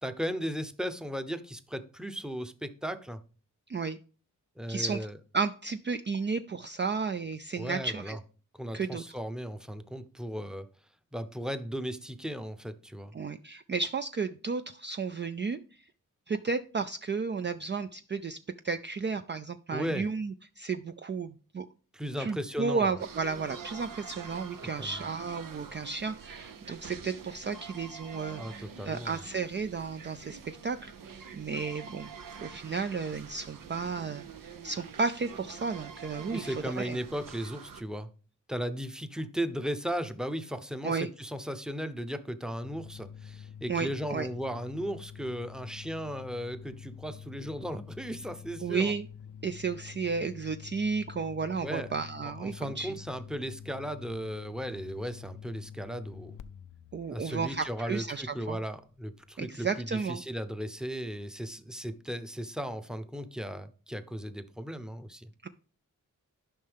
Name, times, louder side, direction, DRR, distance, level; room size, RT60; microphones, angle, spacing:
voice 1, 0.0-3.2 4.6-5.1 7.6-8.2 8.6-10.7 11.1-13.1 19.7-20.1 21.9-23.0 24.8-25.0 28.4-29.2 36.3-38.1 38.5-48.9 51.6-51.9 52.2-56.4 57.1-65.3, equal, ahead, 10 dB, 0.7 m, -36 dB
voice 2, 4.7-5.1 5.3-8.2 8.7-9.0 13.1-15.6 16.3-18.4 18.6-21.7 22.2-30.9 31.3-32.1 32.4-37.0 40.8-41.1 43.7-44.3 48.6-49.1 49.4-52.9 56.9-58.6 59.4-60.2 65.4-65.5, right 5 dB, 35° right, 9 dB, 0.4 m, -33 dB
sound 1, 23.0-37.8, right 6 dB, 85° right, 0.8 m, -46 dB
sound 2, 42.6-59.0, left 8 dB, 70° left, 0.5 m, -47 dB
11.0 x 5.4 x 3.5 m, 0.39 s
wide cardioid pair, 75°, 32 cm